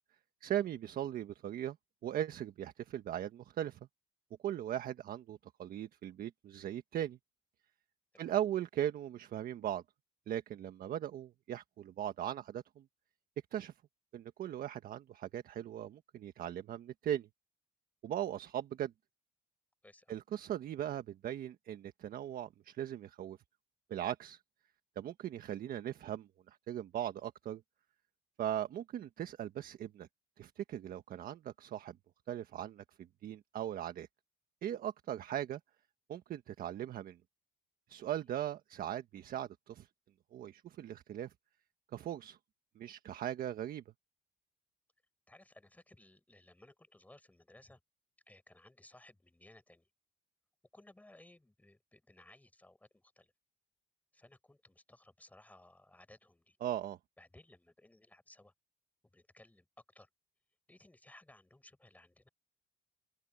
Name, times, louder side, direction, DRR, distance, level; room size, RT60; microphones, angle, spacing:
voice 1, 0.4-1.8 2.0-3.8 4.4-7.2 8.2-9.8 10.3-12.8 13.5-13.7 14.1-17.3 18.0-18.9 20.1-23.4 23.9-24.4 24.9-27.6 28.4-30.1 30.4-32.0 32.3-32.8 33.2-34.1 34.6-35.6 36.1-37.2 37.9-39.9 40.3-41.3 41.9-42.4 42.7-43.8 56.6-57.0, right 11 dB, 60° right, 1.4 m, -39 dB
voice 2, 19.8-20.2 45.3-47.8 48.3-49.9 50.7-53.3 54.1-56.6 57.2-58.5 59.1-60.1 60.7-62.3, left 1 dB, 10° left, 5.8 m, -60 dB
open air
cardioid pair, 110°, 17 cm